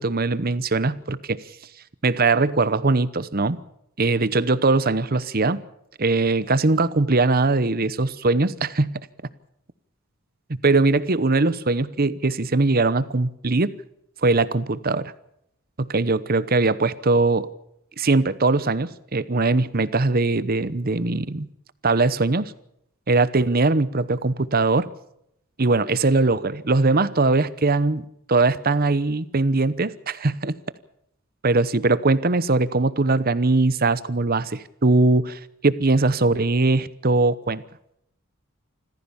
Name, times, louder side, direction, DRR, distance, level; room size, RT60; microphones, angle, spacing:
voice 1, 0.0-1.4 2.0-3.6 4.0-5.6 6.0-9.0 10.5-13.8 14.2-15.1 15.8-17.5 18.0-21.5 21.8-22.5 23.1-24.9 25.6-30.6 31.4-37.6, right 3 dB, 45° right, 16 dB, 0.9 m, -21 dB
26.0 x 15.0 x 7.1 m, 0.77 s
head